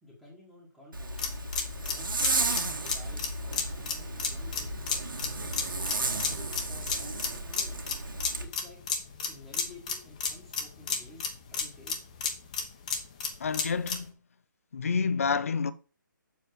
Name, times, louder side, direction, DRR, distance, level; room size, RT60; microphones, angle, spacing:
voice 1, 0.0-1.2 1.8-4.7 5.4-7.8 8.4-8.8 9.3-12.0, left 1 dB, ahead, 1.5 m, -51 dB
Zipper (clothing), 0.9-8.5, right 2 dB, 80° right, 2.1 m, -34 dB
sound 1, 1.2-14.1, left 6 dB, 20° left, 1.1 m, -33 dB
sound 2, 2.0-7.2, right 1 dB, 25° right, 1.1 m, -46 dB
voice 2, 13.4-14.2 14.7-15.7, left 5 dB, 40° left, 0.7 m, -28 dB
7.4 x 5.3 x 6.6 m
hypercardioid pair, 170°, 11 cm